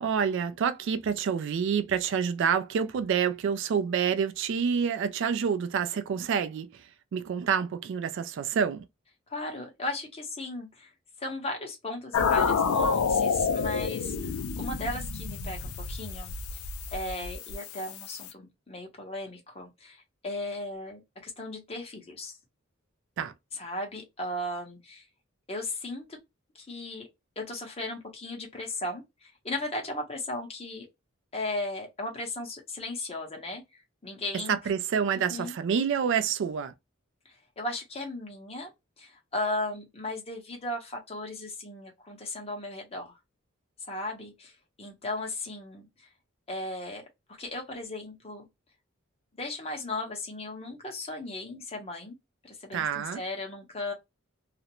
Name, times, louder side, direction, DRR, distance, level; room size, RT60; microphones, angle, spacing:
voice 1, 0.0-8.8 23.2-23.3 34.5-36.7 52.7-53.2, right 7 dB, 60° right, 0.3 m, -28 dB
voice 2, 9.3-10.9 11.2-16.6 16.9-22.4 23.5-25.0 25.5-26.1 26.5-27.1 27.4-30.9 31.3-34.6 35.3-35.5 37.2-38.7 39.0-43.1 43.9-46.1 46.5-47.0 47.4-48.4 49.4-52.1 52.4-53.9, left 2 dB, 30° left, 0.8 m, -36 dB
sound 1, 12.1-18.3, left 5 dB, 90° left, 0.4 m, -29 dB
2.4 x 2.1 x 2.8 m
head